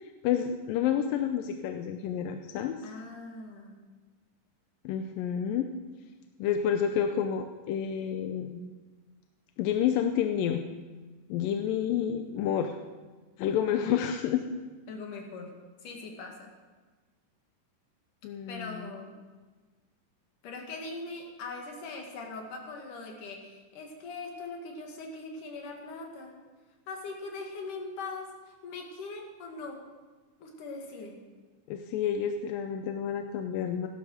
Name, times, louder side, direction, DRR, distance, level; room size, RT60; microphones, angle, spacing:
voice 1, 0.0-2.8 4.8-5.7 6.4-8.6 9.6-10.7 11.3-12.8 13.4-14.5 18.2-18.9 31.7-33.9, left 9 dB, 90° left, 6 dB, 2.5 m, -29 dB
voice 2, 2.8-3.8 14.9-16.5 18.5-19.1 20.4-26.4 26.9-28.3 28.6-29.9 30.4-31.3, left 3 dB, 70° left, 1 dB, 3.6 m, -41 dB
15.5 x 12.0 x 6.6 m, 1.3 s
omnidirectional pair, 3.9 m